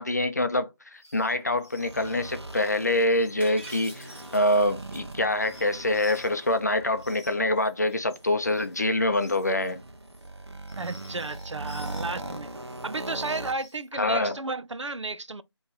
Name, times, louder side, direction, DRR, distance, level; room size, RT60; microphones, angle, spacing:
voice 1, 0.0-9.8 14.0-14.4, left 1 dB, 35° left, 0.6 m, -25 dB
sound 1, 0.9-1.3 1.6-6.5 6.9-12.2 12.6-13.9, left 2 dB, 5° left, 0.8 m, -53 dB
sound 2, 1.8-13.5, right 2 dB, 65° right, 1.1 m, -41 dB
Shatter, 3.4-5.1, right 1 dB, 20° right, 1.6 m, -46 dB
voice 2, 10.7-12.5 12.8-15.4, right 3 dB, 90° right, 0.6 m, -33 dB
5.7 x 3.1 x 2.9 m
figure-of-eight pair, 170°, 15 cm